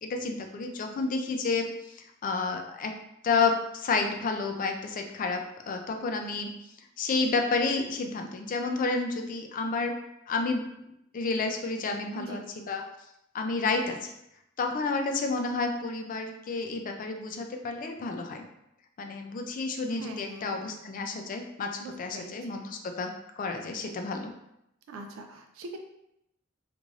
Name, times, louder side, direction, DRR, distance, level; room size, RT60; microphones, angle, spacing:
voice 1, 0.0-2.9 3.2-6.5 7.0-10.0 10.3-10.6 11.1-12.4 12.7-12.8 13.3-14.1 14.6-18.4 19.0-23.1 23.4-24.3, left 4 dB, 40° left, 4 dB, 0.3 m, -30 dB
voice 2, 19.9-20.6 21.8-22.6 24.9-25.8, right 2 dB, 65° right, 4 dB, 0.3 m, -42 dB
3.1 x 2.5 x 2.4 m, 0.81 s
head